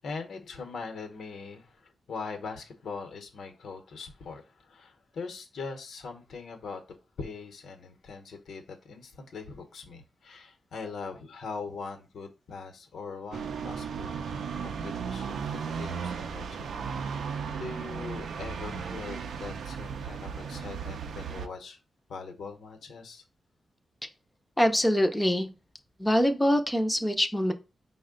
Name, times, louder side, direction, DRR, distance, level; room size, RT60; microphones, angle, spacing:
voice 1, 0.0-6.8 7.2-17.3 17.6-21.8 22.1-23.2, left 4 dB, 75° left, 0.8 m, -41 dB
sound 1, 13.3-21.5, right 6 dB, 75° right, 0.4 m, -35 dB
voice 2, 24.6-25.5 26.0-27.5, equal, 5° left, 0.4 m, -24 dB
5.4 x 2.1 x 3.7 m
wide cardioid pair, 170°, 0 cm